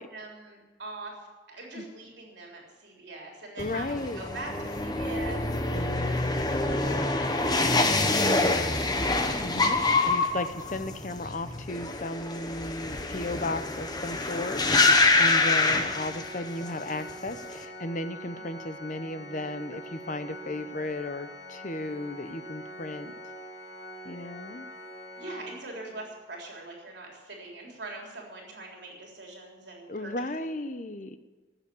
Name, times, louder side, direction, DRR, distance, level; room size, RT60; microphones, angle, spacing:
voice 1, 0.1-6.0 6.7-10.4 14.2-14.4 18.3-18.5 25.2-30.3, right 2 dB, 70° right, -1 dB, 3.7 m, -43 dB
voice 2, 3.6-4.2 5.7-6.5 9.4-23.1 24.0-24.7 29.9-31.2, left 2 dB, 45° left, 11 dB, 0.8 m, -35 dB
sound 1, 3.6-16.7 17.0-17.5, left 3 dB, 20° left, 0.9 m, -26 dB
Organ, 15.3-26.2, equal, 75° left, 4.7 m, -44 dB
17.5 x 7.1 x 8.5 m, 1.3 s
head